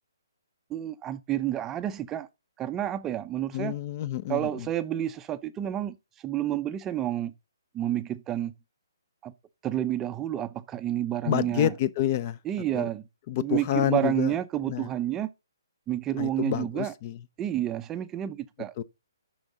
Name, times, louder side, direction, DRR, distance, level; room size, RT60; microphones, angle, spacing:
voice 1, 0.7-2.3 2.6-3.7 4.3-6.0 6.2-7.3 7.7-8.5 9.2-9.3 9.6-11.7 12.5-13.0 13.4-15.3 15.9-16.9 17.4-18.8, right 12 dB, 15° right, 0.5 m, -29 dB
voice 2, 3.5-4.7 11.2-12.4 12.7-12.9 13.3-14.4 14.7-14.9 16.2-17.2 18.8-18.9, left 12 dB, 35° left, 0.6 m, -28 dB
9.8 x 6.3 x 4.1 m
hypercardioid pair, 155°, 2 cm